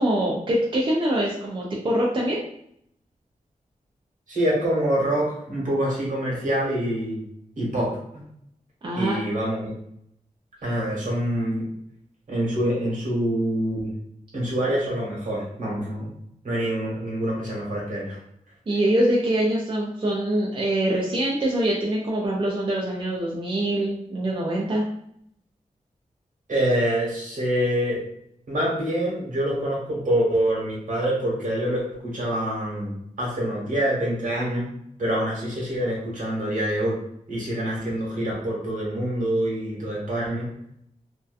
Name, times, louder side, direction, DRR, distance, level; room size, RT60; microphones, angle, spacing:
voice 1, 0.0-2.4 8.8-9.2 18.7-24.8, right 1 dB, 40° right, -4 dB, 0.4 m, -24 dB
voice 2, 4.3-7.2 7.6-8.2 8.9-9.8 10.6-11.7 12.3-13.9 14.3-16.1 16.4-18.2 26.5-28.0 28.5-34.7 35.0-37.0 37.3-40.5, right 1 dB, 70° right, -4 dB, 1.2 m, -26 dB
2.6 x 2.2 x 2.4 m, 0.71 s
wide cardioid pair, 100°, 14 cm